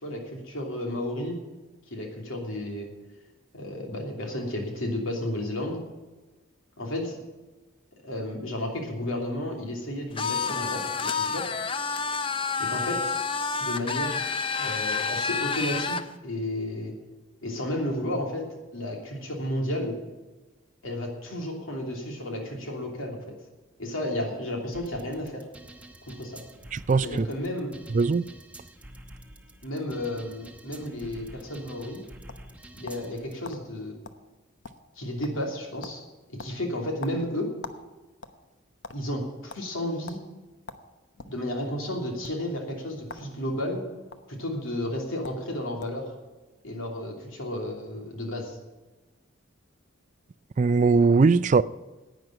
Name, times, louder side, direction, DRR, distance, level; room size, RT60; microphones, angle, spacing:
voice 1, 0.0-1.4 1.9-2.9 3.5-5.8 6.8-7.2 8.0-11.5 12.6-13.2 13.6-14.2 14.6-17.0 17.4-20.0 20.8-23.3 23.8-25.5 26.0-26.4 27.0-27.7 29.6-32.0 32.7-34.0 34.9-36.0 36.3-37.5 38.9-40.2 41.2-43.8 44.3-46.1 46.6-48.6, left 1 dB, 85° left, 3.0 m, -32 dB
sound 1, 10.2-16.1, left 5 dB, 25° left, 0.5 m, -29 dB
sound 2, 24.7-33.3, right 1 dB, 5° right, 0.9 m, -48 dB
voice 2, 26.7-27.3 27.9-28.3 50.6-51.6, right 4 dB, 35° right, 0.3 m, -20 dB
sound 3, 32.3-33.1 33.4-33.6 34.0-34.2 34.5-35.0 35.2-35.5 35.8-36.0 36.4-37.8 38.1-39.0 39.5-39.6 40.1-40.2 40.7-41.4 42.1-42.3 43.0-43.3 43.6-44.2 44.9-45.0 45.2-45.4 45.8-46.1, left 3 dB, 65° left, 1.0 m, -42 dB
10.5 x 9.3 x 8.7 m
head